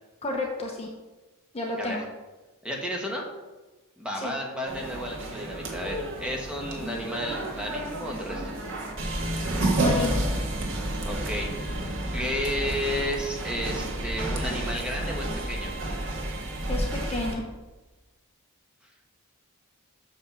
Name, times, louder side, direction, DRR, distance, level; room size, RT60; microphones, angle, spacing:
voice 1, 0.2-0.9 1.5-2.0 4.1-4.3 9.8-10.2 16.7-17.4, left 2 dB, 30° left, 1 dB, 0.9 m, -31 dB
voice 2, 2.6-3.3 4.0-8.5 11.0-11.8 12.1-15.7, equal, 5° right, -1 dB, 1.5 m, -32 dB
sound 1, 4.7-17.4, right 1 dB, 60° right, 1.6 m, -30 dB
6.6 x 5.4 x 6.9 m, 1.1 s
head